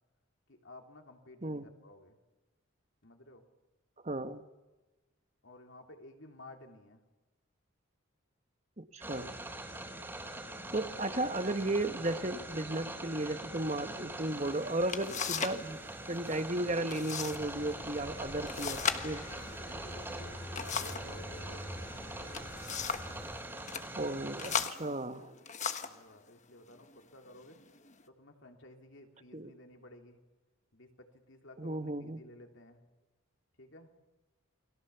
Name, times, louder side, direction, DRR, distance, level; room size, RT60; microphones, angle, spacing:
voice 1, 0.5-2.2 3.0-3.4 5.4-7.0 10.9-11.1 19.5-22.5 25.7-27.6 28.2-30.2 30.7-32.8 33.6-33.9, left 1 dB, 60° left, 4 dB, 3.3 m, -54 dB
voice 2, 4.0-4.4 8.8-9.4 10.7-15.8 16.1-19.3 24.0-25.3 29.3-29.5 31.6-32.2, right 1 dB, 30° right, 9 dB, 1.4 m, -35 dB
sound 1, 9.0-24.7, right 1 dB, 10° right, 3.5 m, -43 dB
sound 2, 14.4-14.5 14.9-15.6 15.9-16.4 16.9-17.4 17.7-17.8 18.5-21.1 22.1-23.2 23.6-23.9 24.4-26.0 26.8-27.0 27.5-28.0, left 7 dB, 35° left, 1.3 m, -37 dB
sound 3, 17.3-23.4, equal, 15° left, 2.5 m, -47 dB
29.0 x 22.5 x 7.1 m, 1.1 s
head